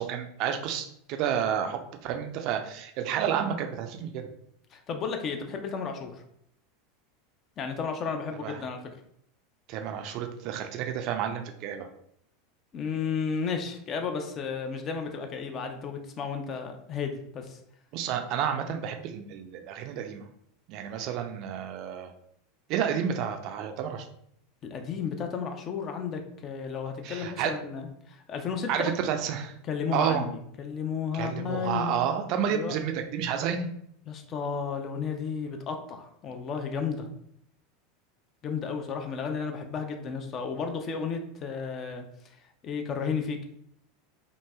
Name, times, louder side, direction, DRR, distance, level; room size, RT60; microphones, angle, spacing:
voice 1, 0.0-4.3 8.4-8.6 9.7-11.9 17.9-20.2 20.7-22.1 22.7-24.1 27.0-27.5 28.7-29.5 29.9-30.2 31.1-33.7, right 8 dB, 50° right, 5 dB, 0.4 m, -30 dB
voice 2, 4.7-6.1 7.6-8.8 12.7-17.6 24.6-28.9 29.6-32.0 32.5-32.8 34.1-37.1 38.4-42.0 42.6-43.5, left 6 dB, 35° left, 5 dB, 0.5 m, -33 dB
2.9 x 2.6 x 2.2 m, 0.70 s
figure-of-eight pair, 80°, 0 cm